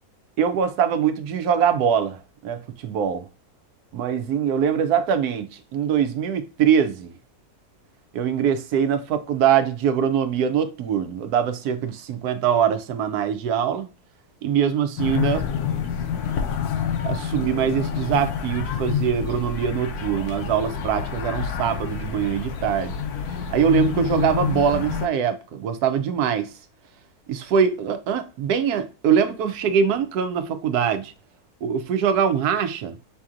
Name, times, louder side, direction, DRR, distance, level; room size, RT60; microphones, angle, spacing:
voice 1, 0.4-3.3 3.9-7.1 8.1-13.9 14.4-15.8 17.0-23.0 23.5-26.5 27.3-31.1 31.6-33.0, right 8 dB, 85° right, 1.1 m, -23 dB
sound 1, 15.0-25.1, left 7 dB, 85° left, 1.2 m, -28 dB
5.7 x 2.7 x 2.4 m
omnidirectional pair, 1.6 m